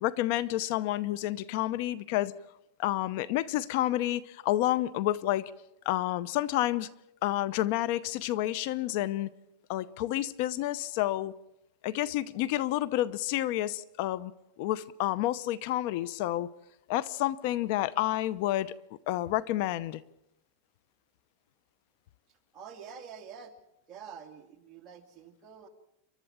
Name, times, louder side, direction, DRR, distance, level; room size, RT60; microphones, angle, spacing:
voice 1, 0.0-2.3 2.8-5.5 5.8-6.9 7.2-9.3 9.7-11.3 11.8-14.3 14.6-16.5 16.9-18.7 19.1-20.0, left 14 dB, 50° left, 0.7 m, -29 dB
voice 2, 22.3-23.6 23.9-25.7, right 7 dB, 25° right, 2.7 m, -47 dB
29.0 x 12.5 x 8.8 m
supercardioid pair, 155°, 0 cm